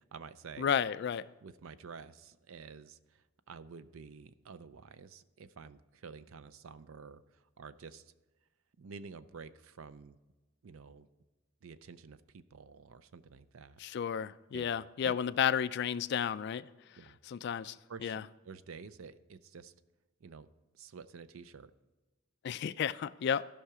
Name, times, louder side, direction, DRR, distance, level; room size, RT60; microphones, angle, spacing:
voice 1, 0.0-0.7 1.4-8.1 8.8-10.2 10.6-11.1 11.6-13.8 14.5-14.7 15.0-15.2 17.0-17.2 17.9-19.7 20.2-20.5 20.7-21.7, right 5 dB, 80° right, 0.5 m, -50 dB
voice 2, 0.6-1.2 13.8-16.7 17.3-17.7 18.0-18.2 22.4-23.5, left 8 dB, 55° left, 0.3 m, -32 dB
14.5 x 5.7 x 4.8 m
head